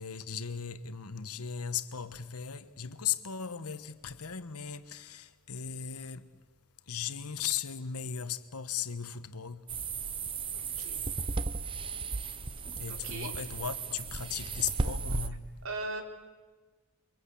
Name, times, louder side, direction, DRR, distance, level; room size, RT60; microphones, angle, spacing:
voice 1, 0.0-6.3 6.9-9.7 12.8-15.6, left 8 dB, 90° left, 1.3 m, -37 dB
sound 1, 9.7-15.3, right 4 dB, 25° right, 0.8 m, -35 dB
voice 2, 12.9-13.3 15.6-16.0, right 2 dB, 65° right, 3.8 m, -38 dB
28.5 x 24.0 x 8.5 m
head